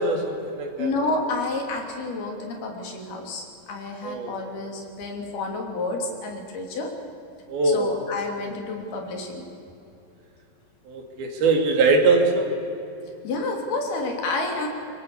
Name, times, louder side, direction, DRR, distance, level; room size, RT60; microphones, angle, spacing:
voice 1, 0.0-0.9 4.0-4.4 7.5-7.9 10.9-12.5, right 3 dB, 80° right, 3 dB, 4.6 m, -22 dB
voice 2, 0.8-6.9 7.6-9.5 13.2-14.7, left 2 dB, 80° left, 2 dB, 4.9 m, -29 dB
24.5 x 23.0 x 7.1 m, 2.8 s
omnidirectional pair, 4.3 m